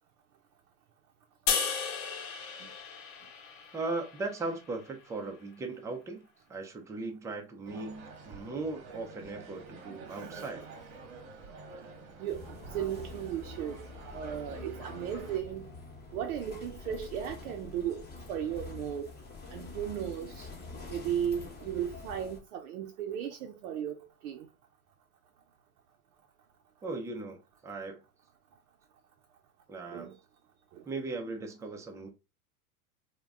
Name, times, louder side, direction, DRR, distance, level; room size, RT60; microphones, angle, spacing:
sound 1, 1.5-4.7, left 6 dB, 60° left, 0.8 m, -34 dB
voice 1, 3.7-6.2 6.5-10.6 26.8-28.0 29.7-30.1 30.9-32.1, right 3 dB, 10° right, 0.3 m, -38 dB
sound 2, 7.7-15.4, right 4 dB, 45° right, 1.0 m, -48 dB
voice 2, 12.2-13.8 14.1-15.7 16.1-19.1 19.5-20.5 20.9-24.5 29.9-30.2 30.7-30.8, right 9 dB, 70° right, 0.5 m, -36 dB
sound 3, 12.3-22.4, left 3 dB, 20° left, 1.0 m, -46 dB
2.3 x 2.1 x 3.4 m
hypercardioid pair, 95°, 44 cm